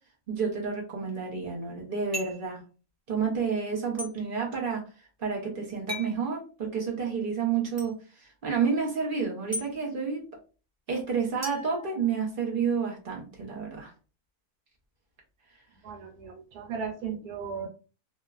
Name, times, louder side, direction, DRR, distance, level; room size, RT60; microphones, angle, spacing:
voice 1, 0.3-2.6 3.1-4.8 5.2-8.0 8.4-10.2 10.9-13.9, right 5 dB, 45° right, -1 dB, 0.7 m, -30 dB
sound 1, 2.1-2.5 4.0-4.1 5.9-6.2 7.8-7.9 9.5-9.7 11.4-12.5, left 1 dB, 25° right, 0.3 m, -37 dB
voice 2, 15.8-17.7, right 6 dB, 80° right, 1 dB, 1.3 m, -36 dB
2.9 x 2.1 x 2.3 m, 0.35 s
omnidirectional pair, 1.6 m